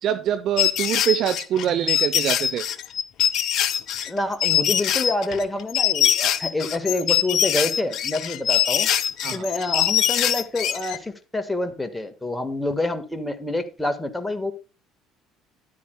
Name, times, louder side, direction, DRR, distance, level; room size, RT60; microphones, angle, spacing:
voice 1, 0.0-2.7 9.2-9.5, right 10 dB, 50° right, 0.7 m, -24 dB
sound 1, 0.6-11.0, left 10 dB, 55° left, 0.9 m, -23 dB
voice 2, 4.1-8.9 9.3-14.5, left 2 dB, 10° left, 1.6 m, -27 dB
13.5 x 10.5 x 2.3 m
figure-of-eight pair, 55°, 0 cm